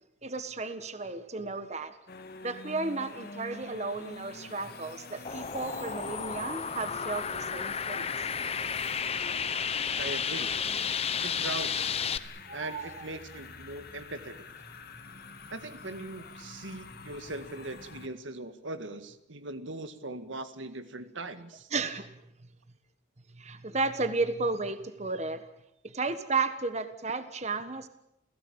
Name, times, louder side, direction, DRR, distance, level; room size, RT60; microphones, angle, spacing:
voice 1, 0.2-2.0 2.4-8.1 12.4-13.1 21.7-22.2 23.3-25.4 25.8-27.9, right 3 dB, 35° right, 10 dB, 1.4 m, -33 dB
sound 1, 2.1-18.1, left 4 dB, 55° left, 2.1 m, -46 dB
sound 2, 5.2-12.2, left 6 dB, 35° left, 0.9 m, -32 dB
voice 2, 10.0-10.6 11.2-11.8 12.5-14.4 15.5-21.7, right 2 dB, 90° right, 10 dB, 1.9 m, -40 dB
30.0 x 16.5 x 8.8 m, 0.82 s
head